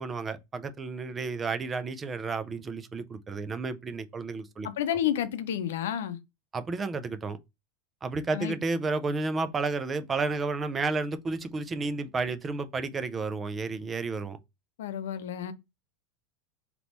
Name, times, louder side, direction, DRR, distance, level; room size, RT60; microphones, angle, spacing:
voice 1, 0.0-4.7 6.5-7.4 8.0-14.4, right 3 dB, 15° right, 0.3 m, -31 dB
voice 2, 4.6-6.2 8.3-8.6 14.8-15.5, left 10 dB, 90° left, 0.6 m, -30 dB
3.5 x 2.9 x 3.8 m
supercardioid pair, 175°, 0 cm